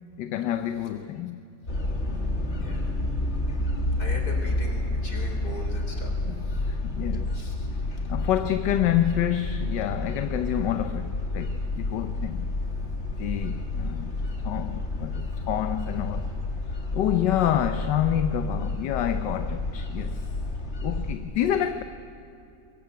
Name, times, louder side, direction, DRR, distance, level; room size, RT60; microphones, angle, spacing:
voice 1, 0.2-1.4 6.2-7.4 8.1-12.5 13.2-14.1 14.4-16.3 16.9-20.3 20.8-21.8, left 11 dB, 80° left, 1.5 m, -28 dB
sound 1, 1.7-21.2, left 2 dB, 40° left, 2.5 m, -30 dB
voice 2, 4.0-6.1 6.5-6.6 7.3-7.7 20.9-21.1, left 2 dB, 60° left, 4.8 m, -40 dB
23.5 x 22.0 x 9.3 m
omnidirectional pair, 1.9 m